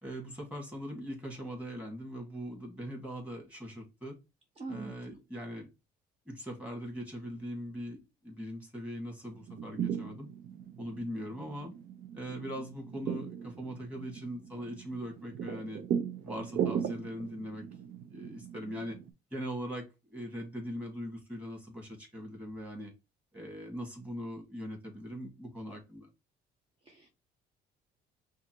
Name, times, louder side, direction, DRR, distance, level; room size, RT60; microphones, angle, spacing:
voice 1, 0.0-4.2 4.7-5.7 6.3-8.0 8.2-10.3 10.8-11.7 12.1-15.8 16.2-17.7 18.1-19.0 19.3-22.9 23.3-26.1, equal, 10° right, 0 dB, 2.0 m, -41 dB
voice 2, 4.6-5.2 26.8-27.1, right 3 dB, 35° right, 1 dB, 1.0 m, -43 dB
sound 1, 9.3-19.1, right 8 dB, 60° right, 0.6 m, -38 dB
5.7 x 2.4 x 3.0 m, 0.25 s
cardioid pair, 110°, 17 cm